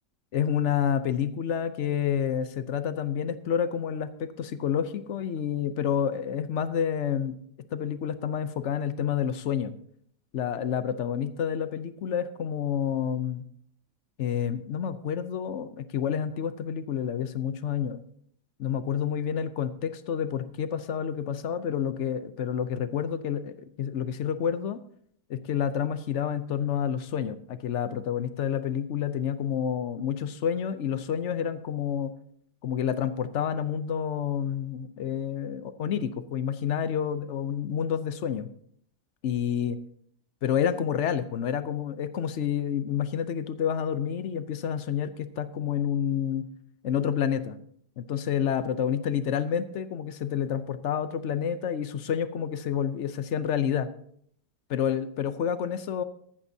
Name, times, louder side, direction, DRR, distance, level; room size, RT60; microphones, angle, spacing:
voice 1, 0.3-7.4 7.7-9.7 10.3-13.4 14.2-18.0 18.6-24.8 25.3-32.1 32.6-38.5 39.2-39.8 40.4-46.5 46.8-47.6 48.0-53.9 54.7-56.0, left 8 dB, 60° left, 12 dB, 0.8 m, -29 dB
14.5 x 12.0 x 2.7 m, 0.65 s
omnidirectional pair, 1.8 m